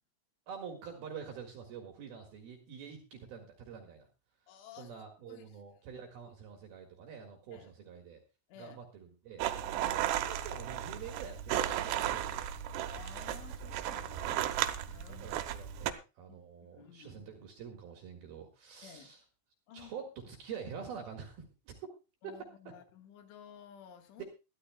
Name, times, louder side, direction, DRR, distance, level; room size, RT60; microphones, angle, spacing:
voice 1, 0.5-4.1 4.8-8.2 8.6-9.5 9.7-12.5 15.1-19.2 19.7-21.9 24.2-24.3, right 7 dB, 60° right, 2 dB, 3.1 m, -47 dB
voice 2, 4.5-5.0 5.3-5.6 6.3-6.4 7.5-7.7 8.5-8.8 9.8-10.1 12.9-15.3 16.3-17.5 18.8-19.1 19.7-19.9 20.2-20.3 22.2-24.2, left 8 dB, 75° left, 6 dB, 3.9 m, -54 dB
sound 1, 9.4-15.9, right 12 dB, 75° right, 2.6 m, -35 dB
21.5 x 13.5 x 2.3 m, 0.29 s
omnidirectional pair, 5.7 m